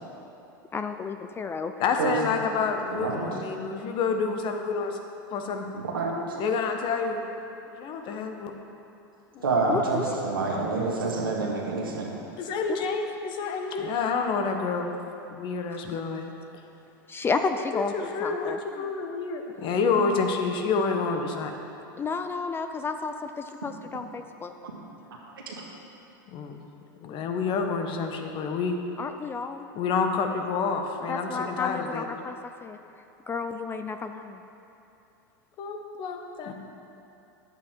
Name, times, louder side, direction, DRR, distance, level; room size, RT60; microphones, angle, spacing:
voice 1, 0.7-1.7 9.7-10.0 12.7-12.8 15.8-16.0 17.1-18.6 22.0-24.5 29.0-29.7 31.1-32.3 32.6-32.8 33.3-34.4, left 4 dB, 20° left, 8 dB, 0.4 m, -31 dB
voice 2, 1.8-5.0 5.3-5.7 6.4-7.2 7.8-8.5 9.3-9.4 12.4-14.9 15.3-16.3 17.7-21.5 26.3-26.6 27.0-28.8 29.7-32.1 35.6-36.5, left 5 dB, 45° left, 4 dB, 1.1 m, -28 dB
voice 3, 2.9-3.3 5.7-6.4 9.4-12.1 24.6-24.7 25.3-25.6, right 3 dB, 90° right, -3 dB, 1.9 m, -28 dB
10.5 x 8.3 x 4.5 m, 2.8 s
hypercardioid pair, 100°, 11 cm